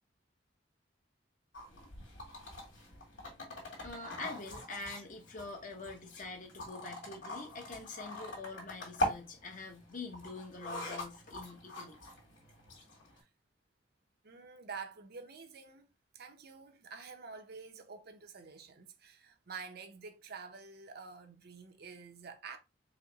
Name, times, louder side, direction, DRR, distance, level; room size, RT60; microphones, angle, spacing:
sound 1, 1.5-13.2, left 1 dB, 85° left, 2.1 m, -42 dB
voice 1, 3.8-12.0, left 3 dB, 45° left, 1.1 m, -45 dB
voice 2, 14.2-22.6, right 5 dB, 60° right, 0.7 m, -48 dB
4.9 x 2.2 x 4.0 m
head